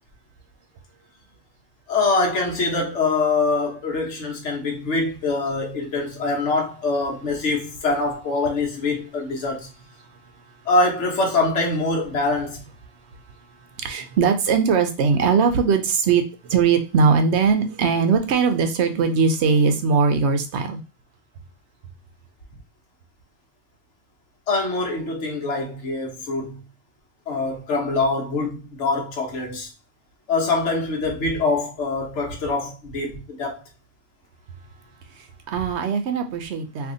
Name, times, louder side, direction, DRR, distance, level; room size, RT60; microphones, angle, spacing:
voice 1, 1.9-9.7 10.7-12.6 24.5-26.6 27.3-29.7 30.3-33.5, left 3 dB, 65° left, 1.2 m, -24 dB
voice 2, 13.8-16.2 16.5-20.8 35.5-36.9, right 5 dB, 65° right, 0.8 m, -20 dB
2.7 x 2.6 x 3.7 m
omnidirectional pair, 1.3 m